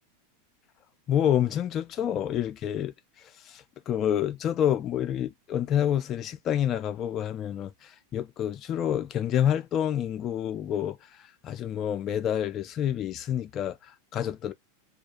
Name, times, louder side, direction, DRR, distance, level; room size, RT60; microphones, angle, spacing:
voice 1, 1.1-2.9 3.5-11.0 11.4-14.5, left 10 dB, 35° left, 0.3 m, -28 dB
2.3 x 2.3 x 2.9 m
figure-of-eight pair, 90°, 0 cm